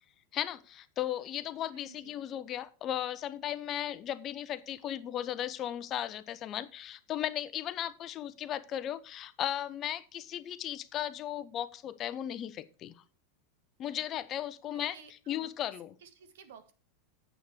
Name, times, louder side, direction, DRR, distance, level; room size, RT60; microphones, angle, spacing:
voice 1, 0.3-13.0 13.8-15.0 15.3-15.9, left 11 dB, 35° left, 14 dB, 0.8 m, -36 dB
voice 2, 1.7-2.3 14.7-16.7, right 6 dB, 65° right, 9 dB, 1.7 m, -55 dB
9.5 x 7.9 x 4.5 m, 0.36 s
figure-of-eight pair, 85°, 0 cm